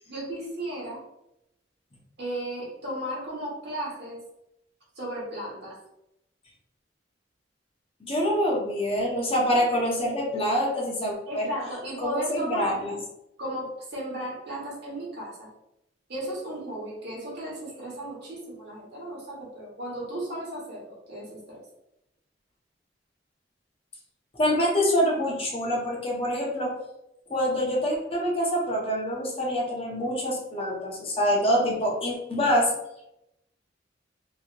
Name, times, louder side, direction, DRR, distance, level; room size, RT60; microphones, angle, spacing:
voice 1, 0.1-1.0 2.2-4.2 5.0-5.8 9.5-9.6 11.3-12.8 13.4-15.5 16.1-21.6, right 1 dB, 65° right, -5 dB, 1.3 m, -35 dB
voice 2, 8.0-11.5 12.0-12.9 24.3-26.8 27.3-32.7, equal, 30° left, -2 dB, 0.7 m, -25 dB
3.0 x 2.8 x 2.5 m, 0.85 s
head